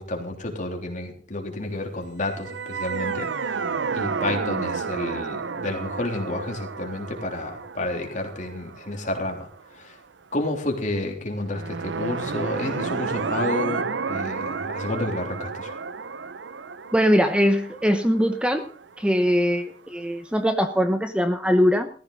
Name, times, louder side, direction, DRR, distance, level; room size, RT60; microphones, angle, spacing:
voice 1, 0.0-3.6 3.9-9.5 9.7-10.0 10.3-15.8, left 2 dB, 45° left, 2 dB, 3.4 m, -30 dB
sound 1, 2.3-9.6 11.5-19.2, right 5 dB, 90° right, 0.7 m, -31 dB
voice 2, 16.9-18.7 19.0-21.9, equal, 5° right, 7 dB, 0.9 m, -21 dB
15.0 x 15.0 x 4.0 m, 0.42 s
head